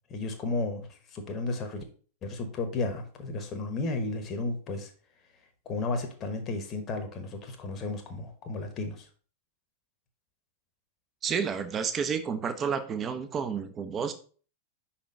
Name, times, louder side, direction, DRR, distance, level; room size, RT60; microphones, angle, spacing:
voice 1, 0.1-1.8 2.2-4.9 5.6-9.1, left 3 dB, 30° left, 6 dB, 1.1 m, -33 dB
voice 2, 11.2-14.1, right 6 dB, 25° right, 11 dB, 0.8 m, -30 dB
5.6 x 4.4 x 5.2 m, 0.40 s
figure-of-eight pair, 90°, 0 cm